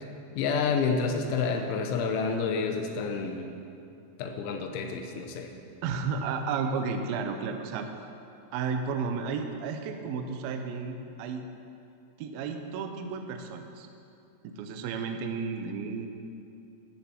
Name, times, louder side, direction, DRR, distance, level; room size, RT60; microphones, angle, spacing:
voice 1, 0.4-3.5 4.2-5.5, left 5 dB, 85° left, 4 dB, 3.3 m, -29 dB
voice 2, 5.8-7.9 8.5-11.4 12.2-13.9 14.4-16.1, right 5 dB, 80° right, 5 dB, 2.1 m, -32 dB
14.0 x 10.5 x 4.5 m, 2.6 s
omnidirectional pair, 5.3 m